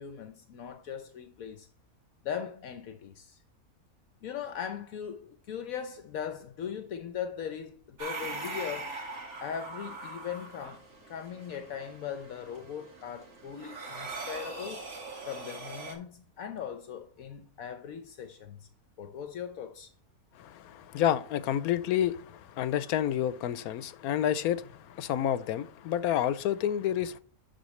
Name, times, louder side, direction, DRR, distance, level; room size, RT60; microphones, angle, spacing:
voice 1, 0.0-1.7 2.2-3.4 4.2-9.0 9.4-14.8 15.3-18.7 19.0-19.9, left 8 dB, 75° left, 1.1 m, -39 dB
sound 1, 8.0-15.9, right 3 dB, 55° right, 2.0 m, -41 dB
voice 2, 20.4-27.2, left 10 dB, 90° left, 1.1 m, -29 dB
11.5 x 4.1 x 3.1 m
omnidirectional pair, 1.5 m